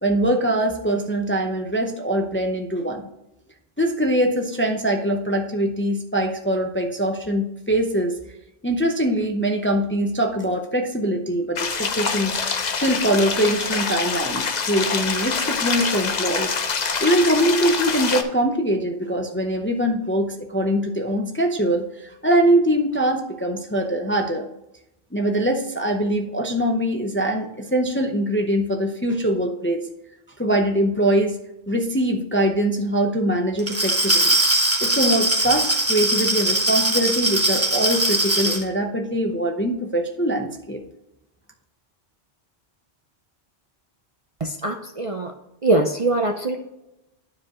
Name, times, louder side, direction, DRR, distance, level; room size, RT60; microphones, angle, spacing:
voice 1, 0.0-3.1 3.8-8.2 8.6-16.5 17.0-24.5 25.1-29.8 30.4-31.4 31.7-34.4 34.8-40.8, right 1 dB, 15° left, 2 dB, 0.5 m, -23 dB
sound 1, 11.6-18.2, left 5 dB, 45° left, 0.7 m, -25 dB
Glass, 33.6-38.6, right 1 dB, 15° right, 1.0 m, -21 dB
voice 2, 44.4-45.3 45.6-46.6, right 2 dB, 40° right, 4 dB, 0.6 m, -22 dB
12.0 x 4.9 x 3.0 m, 0.90 s
omnidirectional pair, 1.1 m